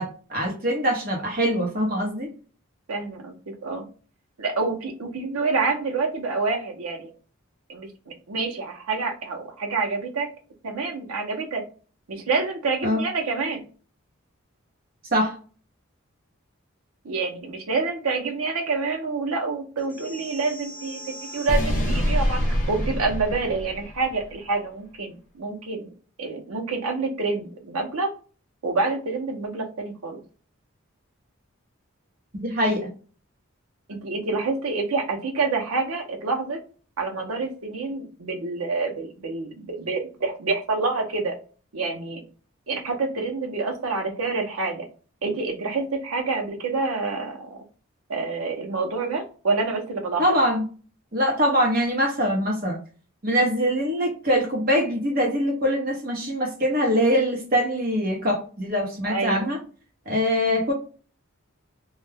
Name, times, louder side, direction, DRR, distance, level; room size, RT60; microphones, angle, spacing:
voice 1, 0.0-2.3 12.8-13.0 15.1-15.4 32.3-32.9 50.2-50.6 51.1-52.8 53.2-59.6 60.1-60.7, equal, 45° right, 1 dB, 0.9 m, -23 dB
voice 2, 2.9-3.9 4.4-7.1 7.7-10.3 10.6-11.6 12.1-13.6 17.0-22.4 22.7-25.9 26.2-28.1 28.6-30.2 33.9-36.6 37.0-41.4 41.7-42.2 42.7-44.9 45.2-47.6 48.1-50.2 59.1-59.5, right 3 dB, 90° right, 3 dB, 0.7 m, -27 dB
sound 1, 19.9-24.2, equal, 35° left, 0.6 m, -27 dB
2.3 x 2.1 x 3.3 m, 0.38 s
head